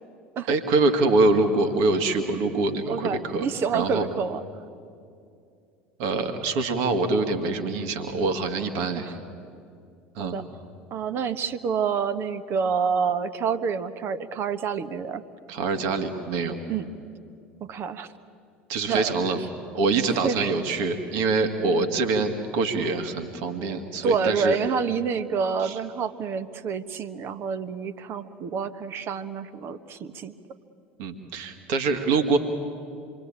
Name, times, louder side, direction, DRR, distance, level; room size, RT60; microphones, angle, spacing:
voice 1, 0.5-3.5 3.7-4.1 6.0-9.1 10.2-10.4 15.5-16.6 18.7-19.4 19.7-24.6 25.6-25.8 31.0-32.4, right 3 dB, 55° right, 6 dB, 2.0 m, -24 dB
voice 2, 2.9-4.4 8.9-9.1 10.2-10.4 10.9-15.2 16.7-16.9 17.6-18.1 18.9-19.2 20.2-20.6 24.0-30.3, right 6 dB, 40° right, 13 dB, 1.2 m, -28 dB
27.0 x 22.5 x 8.8 m, 2.5 s
figure-of-eight pair, 70°, 6 cm